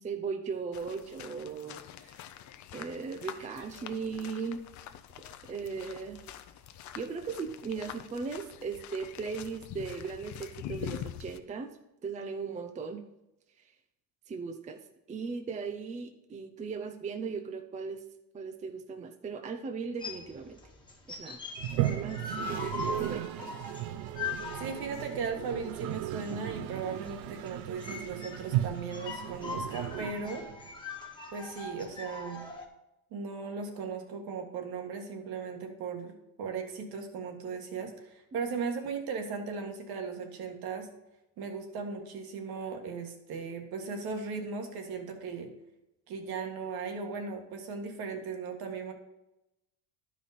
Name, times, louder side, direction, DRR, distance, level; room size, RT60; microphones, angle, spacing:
voice 1, 0.0-2.2 2.7-4.6 5.5-6.2 6.9-13.0 14.3-14.8 15.1-18.0 18.3-20.6 21.1-21.4 21.8-22.2 22.5-23.6, right 5 dB, 20° right, 6 dB, 0.5 m, -38 dB
sound 1, 0.7-11.4, left 10 dB, 50° left, 0.6 m, -45 dB
sound 2, 20.0-32.7, left 4 dB, 10° left, 1.3 m, -41 dB
Toilet flush, 21.6-30.7, right 13 dB, 85° right, 0.6 m, -35 dB
voice 2, 24.6-30.4 31.3-32.4 33.1-40.9 41.4-45.5 46.1-48.9, right 5 dB, 65° right, 4 dB, 1.7 m, -37 dB
11.0 x 5.1 x 4.1 m, 0.92 s
cardioid pair, 120°, 40 cm